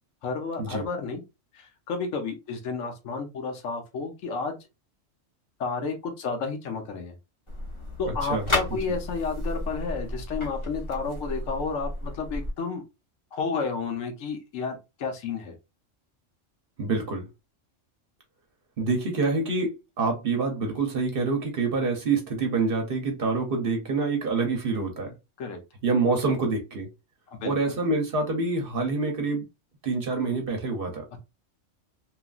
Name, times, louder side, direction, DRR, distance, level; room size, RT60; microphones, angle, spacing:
voice 1, 0.2-1.2 1.6-4.6 5.6-7.1 8.0-12.8 13.3-15.5 25.4-25.6 27.3-27.8, left 4 dB, 80° left, 1.1 m, -31 dB
sound 1, 7.5-12.5, left 1 dB, 25° left, 1.0 m, -33 dB
voice 2, 8.1-8.8 16.8-17.2 18.8-19.7 20.0-25.1 25.8-26.9 27.4-29.4 29.8-31.0, right 3 dB, 55° right, 0.8 m, -26 dB
2.9 x 2.4 x 2.3 m
omnidirectional pair, 1.3 m